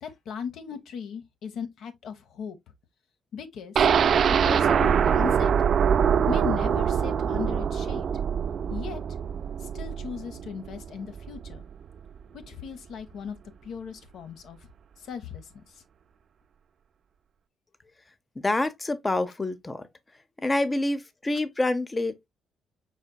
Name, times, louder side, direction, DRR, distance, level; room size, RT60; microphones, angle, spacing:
voice 1, 0.0-2.6 3.3-3.9 4.4-5.5 6.3-8.1 8.7-9.0 9.6-11.6 12.3-13.4 13.6-14.6 15.0-15.5, left 7 dB, 75° left, 0.8 m, -37 dB
sound 1, 3.8-11.6 12.0-12.1 12.4-12.5, right 7 dB, 55° right, 0.3 m, -24 dB
voice 2, 18.4-19.9 20.1-22.3, left 2 dB, 20° left, 0.6 m, -27 dB
4.9 x 4.2 x 2.2 m
cardioid pair, 90°, 0 cm